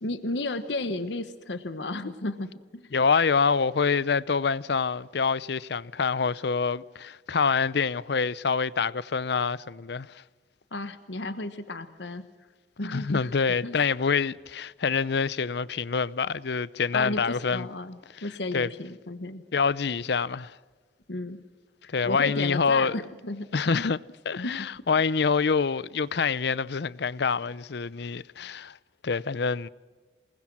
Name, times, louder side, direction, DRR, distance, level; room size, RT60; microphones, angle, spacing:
voice 1, 0.0-2.9 10.7-12.3 12.8-13.3 13.6-13.8 16.9-19.4 21.1-21.4 21.8-23.8 24.4-24.7, left 2 dB, 85° left, 1.2 m, -33 dB
voice 2, 2.9-10.2 12.9-17.7 18.5-18.7 19.5-20.6 21.9-22.9 23.5-24.0 24.3-28.8 29.0-29.7, left 5 dB, 65° left, 0.6 m, -26 dB
27.5 x 20.0 x 6.2 m
head